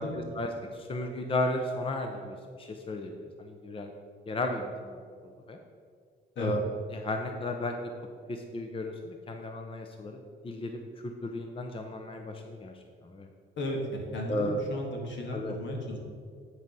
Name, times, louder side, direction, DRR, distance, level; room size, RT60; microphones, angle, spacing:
voice 1, 0.0-3.9 4.3-5.6 6.4-7.9 8.3-12.7 13.0-13.3 14.3-14.6 15.3-15.6, left 1 dB, 25° left, 4 dB, 0.7 m, -34 dB
voice 2, 14.1-16.0, left 1 dB, 70° left, 0 dB, 2.0 m, -34 dB
10.0 x 4.8 x 5.4 m, 2.2 s
cardioid pair, 90°, 20 cm